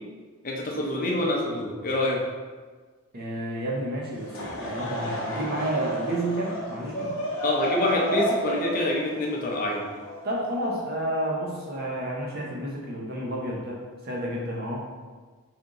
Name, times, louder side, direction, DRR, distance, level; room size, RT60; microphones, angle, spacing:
voice 1, 0.4-2.2 7.4-9.9, left 1 dB, 40° left, -1 dB, 0.6 m, -26 dB
voice 2, 3.1-7.2 10.2-14.8, right 1 dB, 45° right, -3 dB, 0.8 m, -30 dB
Laughter / Crowd, 4.1-10.6, equal, 60° left, 0.9 m, -32 dB
3.8 x 3.4 x 3.8 m, 1.4 s
head